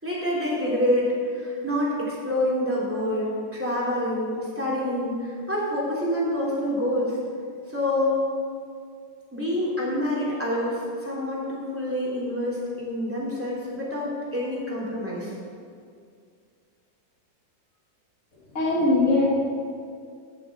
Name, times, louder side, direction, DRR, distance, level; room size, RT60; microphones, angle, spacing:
voice 1, 0.0-7.2 7.7-8.2 9.3-15.3, left 1 dB, 5° right, -6 dB, 3.1 m, -27 dB
voice 2, 18.5-19.3, left 2 dB, 40° left, -3 dB, 2.4 m, -20 dB
9.9 x 7.1 x 7.1 m, 2.3 s
omnidirectional pair, 2.1 m